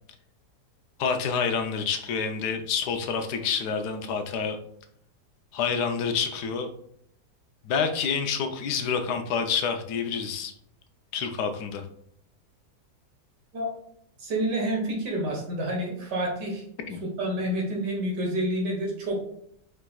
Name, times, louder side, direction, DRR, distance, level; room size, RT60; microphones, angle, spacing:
voice 1, 1.0-4.6 5.5-6.7 7.6-10.5 11.1-11.8 16.9-17.0, left 6 dB, 75° left, 6 dB, 1.2 m, -28 dB
voice 2, 14.2-16.6 17.0-19.2, right 1 dB, 80° right, 0 dB, 2.0 m, -28 dB
4.9 x 4.5 x 2.3 m, 0.70 s
omnidirectional pair, 1.8 m